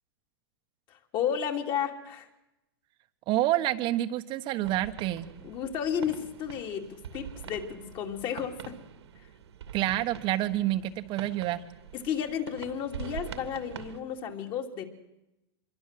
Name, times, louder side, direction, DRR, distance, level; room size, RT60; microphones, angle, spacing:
voice 1, 0.9-2.3 5.4-8.8 11.9-14.8, left 8 dB, 35° left, 4 dB, 3.2 m, -32 dB
voice 2, 3.3-5.3 9.7-11.6, right 14 dB, 35° right, 7 dB, 1.3 m, -28 dB
sound 1, 4.6-14.0, right 8 dB, 85° right, 2.6 m, -44 dB
25.5 x 22.5 x 7.7 m, 0.92 s
hypercardioid pair, 140°, 14 cm